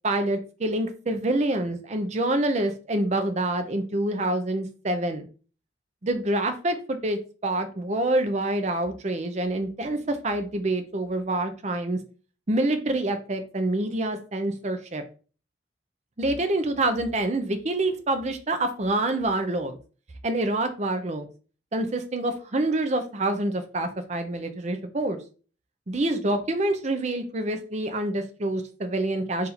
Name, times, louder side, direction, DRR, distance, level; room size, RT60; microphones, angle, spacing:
voice 1, 0.0-5.3 6.0-12.0 12.5-15.0 16.2-19.8 20.2-21.3 21.7-25.2 25.9-29.5, right 1 dB, 35° right, 7 dB, 0.6 m, -26 dB
4.3 x 2.6 x 4.1 m, 0.37 s
head